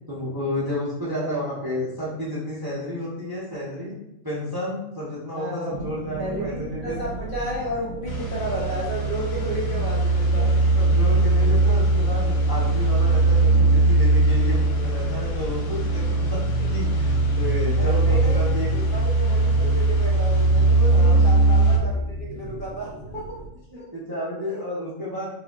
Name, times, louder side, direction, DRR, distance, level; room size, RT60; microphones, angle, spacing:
voice 1, 0.1-4.0 4.2-7.0 10.7-18.7 20.9-21.2 23.9-25.3, left 1 dB, 25° right, -7 dB, 0.6 m, -31 dB
voice 2, 5.3-5.8 6.2-10.5 17.8-23.3 23.8-23.9 24.5-24.6, equal, 50° left, -5 dB, 0.8 m, -32 dB
sound 1, 5.7-23.5, right 2 dB, 85° right, 1.0 m, -35 dB
sound 2, 8.1-21.8, right 2 dB, 90° left, 1.0 m, -20 dB
4.1 x 2.6 x 2.3 m, 0.85 s
omnidirectional pair, 1.4 m